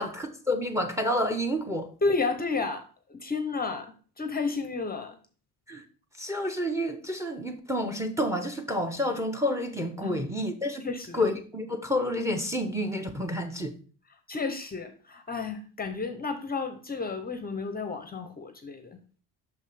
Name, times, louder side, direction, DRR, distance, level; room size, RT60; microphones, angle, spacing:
voice 1, 0.0-1.9 5.7-5.8 6.2-10.9 11.1-13.8, left 1 dB, 10° right, 0.8 m, -29 dB
voice 2, 2.0-5.2 10.0-10.2 10.8-11.3 14.3-19.0, left 4 dB, 25° left, 0.7 m, -32 dB
6.1 x 5.4 x 3.3 m
cardioid pair, 120°, 38 cm